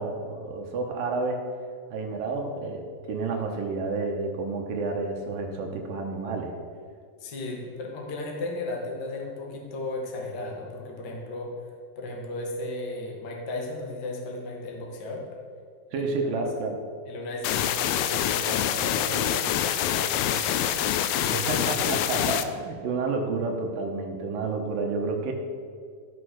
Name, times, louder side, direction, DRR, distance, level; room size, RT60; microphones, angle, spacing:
voice 1, 0.0-1.4 1.9-6.5 15.9-16.8 21.3-25.3, right 3 dB, 70° right, 2 dB, 2.5 m, -30 dB
voice 2, 7.2-11.5 11.9-15.3 15.9-16.1 17.0-19.5 19.9-20.6 21.2-21.7, left 2 dB, 40° left, -1 dB, 1.6 m, -35 dB
sound 1, 17.4-22.4, left 10 dB, 80° left, 2.2 m, -26 dB
13.5 x 6.7 x 6.4 m, 2.2 s
omnidirectional pair, 4.7 m